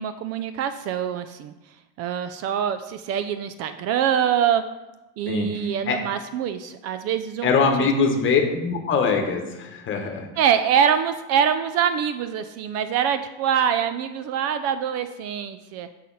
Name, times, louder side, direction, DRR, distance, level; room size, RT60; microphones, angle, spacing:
voice 1, 0.0-1.5 2.0-4.6 5.2-7.5 7.8-7.9 10.4-15.9, right 8 dB, 45° right, 10 dB, 0.4 m, -24 dB
voice 2, 7.4-10.3, left 5 dB, 35° left, 3 dB, 1.4 m, -22 dB
8.2 x 5.6 x 4.1 m, 1.0 s
supercardioid pair, 140°, 36 cm